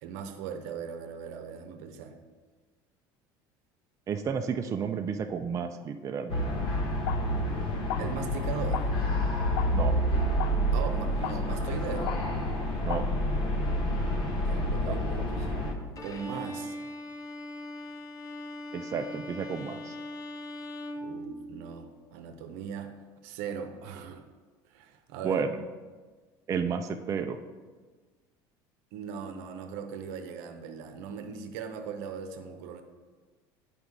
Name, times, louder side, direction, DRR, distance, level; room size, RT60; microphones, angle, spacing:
voice 1, 0.0-2.2 8.0-8.9 10.7-12.1 14.5-15.6 16.0-16.8 21.0-22.9 23.2-24.2 24.7-25.4 28.9-32.8, right 7 dB, 75° right, 7 dB, 0.7 m, -39 dB
voice 2, 4.1-6.5 9.7-10.0 12.8-13.1 15.2-15.3 18.7-19.9 25.2-25.6 26.5-27.4, right 6 dB, 30° right, 6 dB, 0.4 m, -32 dB
sound 1, 6.3-15.7, equal, 50° left, 1.1 m, -28 dB
sound 2, 6.9-13.1, left 9 dB, 80° left, 0.4 m, -40 dB
Bowed string instrument, 16.0-21.9, left 1 dB, 30° left, 0.7 m, -40 dB
8.0 x 4.9 x 3.6 m, 1.4 s
supercardioid pair, 110°, 11 cm